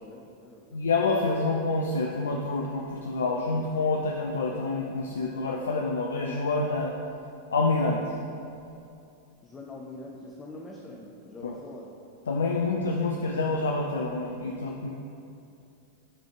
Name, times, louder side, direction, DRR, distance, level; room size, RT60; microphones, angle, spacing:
voice 1, 0.0-0.9 9.4-11.9, left 2 dB, 20° left, -1 dB, 0.5 m, -44 dB
voice 2, 0.7-6.9 7.5-8.1 11.4-11.6 12.3-14.9, left 3 dB, 70° left, 1 dB, 0.4 m, -27 dB
8.6 x 3.4 x 3.7 m, 2.6 s
figure-of-eight pair, 90°, 0 cm